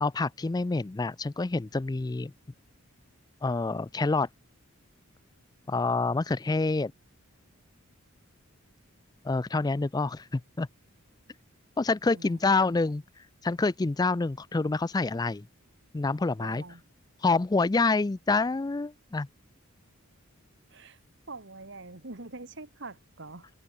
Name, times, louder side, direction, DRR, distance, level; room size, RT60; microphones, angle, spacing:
voice 1, 0.0-2.3 3.4-4.3 5.7-6.9 9.2-10.7 11.8-13.0 13.4-15.4 15.9-16.6 17.2-19.3, left 3 dB, 20° left, 0.3 m, -27 dB
voice 2, 12.1-12.4 16.4-16.8 20.7-21.0 21.3-23.5, right 3 dB, 55° right, 2.3 m, -44 dB
head